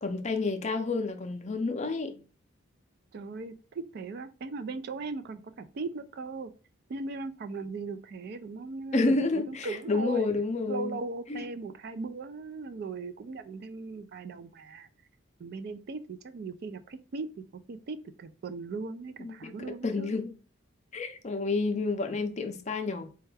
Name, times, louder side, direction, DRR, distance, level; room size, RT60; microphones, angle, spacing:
voice 1, 0.0-2.2 8.9-11.0 11.3-11.4 19.2-20.3 20.9-23.1, left 3 dB, 35° left, 0.5 m, -30 dB
voice 2, 3.1-6.5 6.9-10.3 10.7-14.9 15.4-20.1, right 4 dB, 50° right, 0.3 m, -38 dB
4.3 x 2.3 x 3.3 m
head